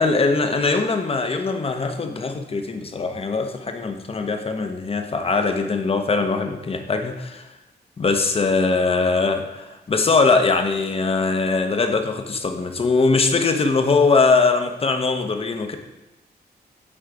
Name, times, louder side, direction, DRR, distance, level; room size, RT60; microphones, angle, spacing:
voice 1, 0.0-7.5 8.0-15.8, left 4 dB, 35° left, 6 dB, 0.8 m, -21 dB
8.8 x 4.0 x 4.7 m, 1.0 s
cardioid pair, 100°, 17 cm